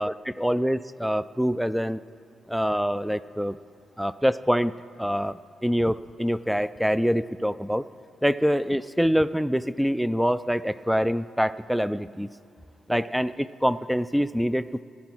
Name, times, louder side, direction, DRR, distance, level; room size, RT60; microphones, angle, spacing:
voice 1, 0.0-2.0 2.5-3.6 4.0-4.7 5.0-7.9 8.2-12.3 12.9-14.8, equal, ahead, 16 dB, 0.3 m, -25 dB
17.5 x 8.6 x 6.1 m, 2.6 s
cardioid pair, 75°, 0 cm